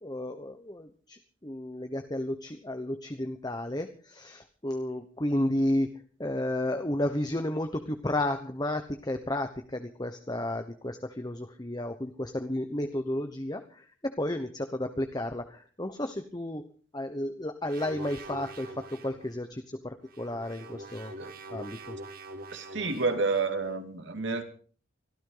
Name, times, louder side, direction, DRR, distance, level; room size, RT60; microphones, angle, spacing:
voice 1, 0.0-5.9 6.2-16.7 16.9-21.1 21.5-22.0, left 1 dB, 20° left, 1.0 m, -32 dB
sound 1, 17.7-19.3 20.0-23.7, right 1 dB, 45° right, 2.2 m, -44 dB
voice 2, 22.5-24.4, right 4 dB, 65° right, 2.6 m, -29 dB
24.5 x 13.5 x 3.9 m
head